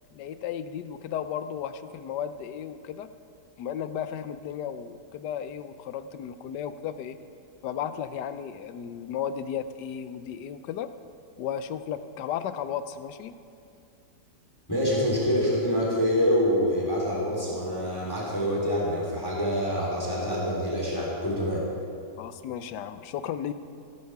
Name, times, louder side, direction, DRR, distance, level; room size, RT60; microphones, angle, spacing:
voice 1, 0.1-3.1 3.6-7.2 7.6-10.9 11.4-13.3 22.2-23.5, left 9 dB, 80° left, 11 dB, 1.3 m, -34 dB
voice 2, 14.7-21.6, equal, 15° left, -5 dB, 3.3 m, -26 dB
15.5 x 12.5 x 4.7 m, 2.5 s
omnidirectional pair, 1.8 m